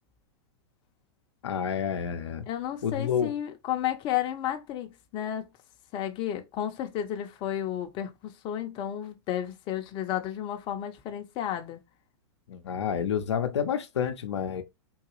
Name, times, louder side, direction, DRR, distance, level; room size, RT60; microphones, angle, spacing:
voice 1, 1.4-2.4 2.8-3.3 12.5-14.6, left 8 dB, 75° left, 0.6 m, -29 dB
voice 2, 2.5-5.5 5.9-11.8, left 11 dB, 35° left, 0.6 m, -32 dB
3.8 x 2.3 x 3.0 m
hypercardioid pair, 115°, 15 cm